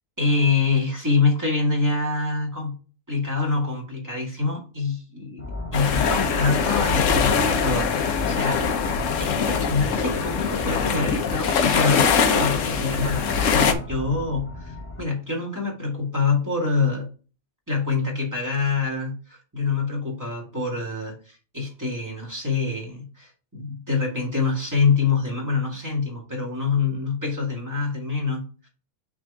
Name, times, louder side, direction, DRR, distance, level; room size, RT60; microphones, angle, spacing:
voice 1, 0.2-2.8 3.1-5.4 5.7-8.9 9.2-17.1 17.7-28.7, left 4 dB, 15° right, -1 dB, 2.0 m, -25 dB
sound 1, 5.4-15.0, left 2 dB, 15° left, 0.7 m, -35 dB
sound 2, 5.7-13.7, left 6 dB, 80° left, 1.1 m, -22 dB
6.1 x 3.5 x 4.7 m, 0.36 s
omnidirectional pair, 1.3 m